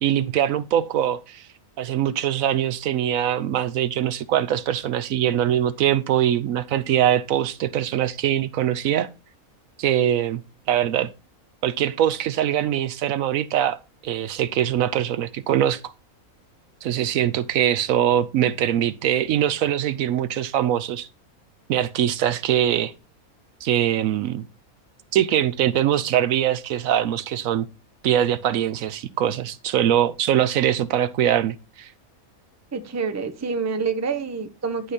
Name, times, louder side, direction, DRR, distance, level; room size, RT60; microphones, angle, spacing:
voice 1, 0.0-1.5 1.8-9.1 9.8-10.4 10.7-11.1 11.6-15.9 16.8-21.1 21.7-22.9 23.6-24.5 25.1-27.7 28.0-31.9, right 10 dB, 75° right, 1.0 m, -22 dB
voice 2, 32.7-34.9, right 5 dB, 15° right, 0.6 m, -27 dB
11.0 x 4.9 x 4.2 m
omnidirectional pair, 1.5 m